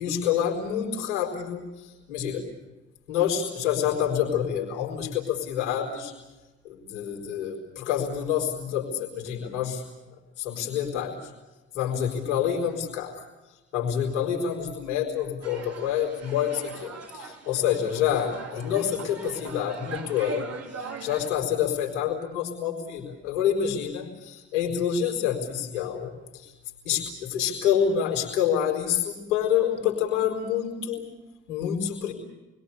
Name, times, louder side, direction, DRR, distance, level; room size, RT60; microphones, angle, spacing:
voice 1, 0.0-2.4 3.1-6.1 6.6-9.8 10.4-11.3 11.7-13.2 13.7-26.5 26.8-31.0 31.5-32.1, left 9 dB, 80° left, 0 dB, 4.4 m, -27 dB
sound 1, 15.4-21.3, right 4 dB, 45° right, 3.7 m, -40 dB
29.5 x 22.0 x 6.8 m, 1.1 s
figure-of-eight pair, 45°, 35 cm